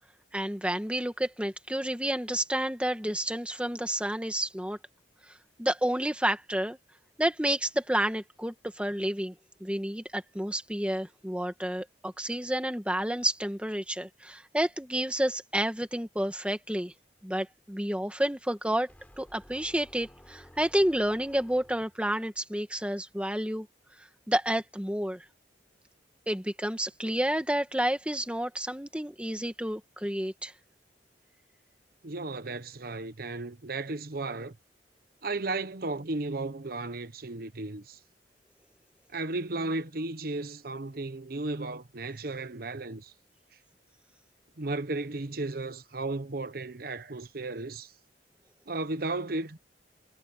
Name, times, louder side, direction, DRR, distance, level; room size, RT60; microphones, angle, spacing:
voice 1, 0.3-4.8 5.6-6.8 7.2-9.4 9.6-16.9 17.2-18.9 19.2-23.7 24.3-25.3 26.3-30.5, right 1 dB, 5° right, 2.0 m, -30 dB
sound 1, 18.9-22.1, equal, 10° left, 3.8 m, -54 dB
voice 2, 32.0-34.6 35.2-38.0 39.1-43.1 44.6-47.9 48.7-49.6, right 2 dB, 60° right, 1.0 m, -34 dB
head